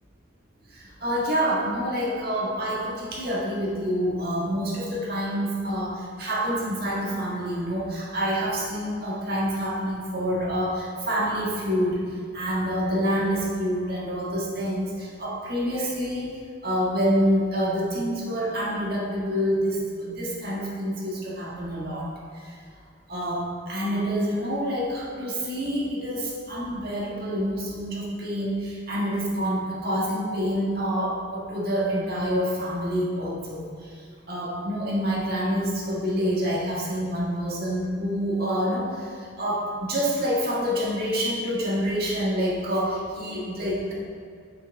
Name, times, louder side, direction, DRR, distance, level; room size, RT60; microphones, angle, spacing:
voice 1, 0.7-12.0 12.3-22.6 23.1-43.9, equal, 50° right, -5 dB, 1.9 m, -27 dB
6.3 x 5.9 x 4.8 m, 2.2 s
head